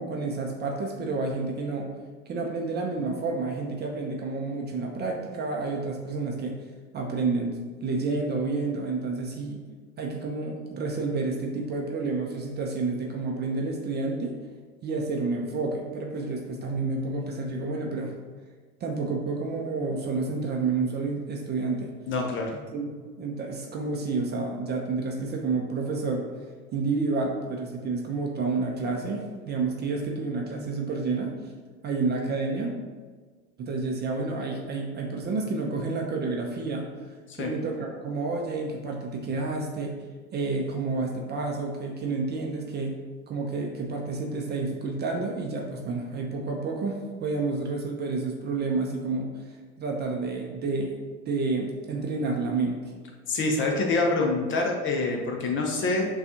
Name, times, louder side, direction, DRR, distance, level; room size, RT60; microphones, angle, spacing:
voice 1, 0.0-1.9 2.3-6.6 6.9-9.6 10.0-14.4 14.8-18.1 18.8-21.9 22.5-22.8 23.2-26.3 26.7-31.3 31.8-32.8 33.6-36.9 37.4-39.9 40.3-42.9 43.3-49.3 49.8-50.9 51.3-52.9, right 3 dB, 25° right, 0 dB, 0.6 m, -29 dB
voice 2, 22.1-22.5 37.3-37.5 53.3-56.1, left 3 dB, 30° left, 1 dB, 0.7 m, -26 dB
6.5 x 2.4 x 2.8 m, 1.5 s
hypercardioid pair, 85°, 42 cm